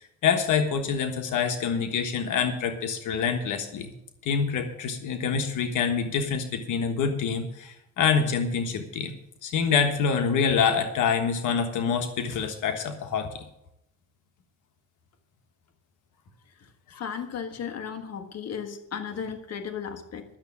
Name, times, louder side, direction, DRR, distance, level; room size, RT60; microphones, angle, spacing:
voice 1, 0.2-3.9 4.2-9.1 9.4-13.4 16.9-17.0, left 6 dB, 80° left, 6 dB, 1.4 m, -26 dB
voice 2, 16.6-20.2, left 7 dB, 60° left, 7 dB, 1.5 m, -35 dB
12.0 x 7.0 x 8.5 m, 0.83 s
cardioid pair, 90°, 30 cm